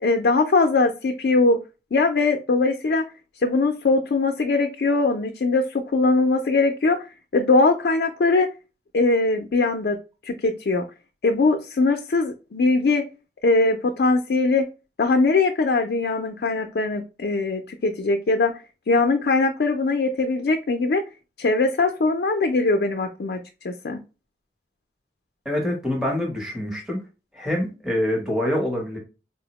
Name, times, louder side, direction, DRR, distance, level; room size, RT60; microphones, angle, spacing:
voice 1, 0.0-1.6 1.9-3.0 3.4-7.0 7.3-8.5 8.9-10.0 10.2-10.8 11.2-13.0 13.4-14.7 15.0-18.5 18.9-21.0 21.4-23.4 23.6-24.0, left 3 dB, 65° left, 0.4 m, -21 dB
voice 2, 25.4-27.0 27.3-29.0, left 1 dB, 5° right, 0.8 m, -25 dB
4.3 x 2.0 x 2.8 m
head